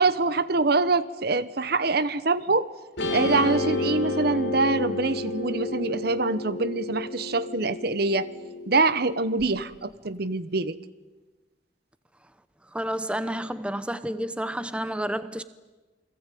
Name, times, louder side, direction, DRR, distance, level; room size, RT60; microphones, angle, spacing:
voice 1, 0.0-2.7 3.1-8.3 8.7-10.8, right 3 dB, 55° right, 1.1 m, -24 dB
Guitar, 3.0-9.4, left 2 dB, 70° left, 5.7 m, -31 dB
voice 2, 12.7-15.4, right 1 dB, 5° right, 0.8 m, -30 dB
29.0 x 20.5 x 9.2 m
head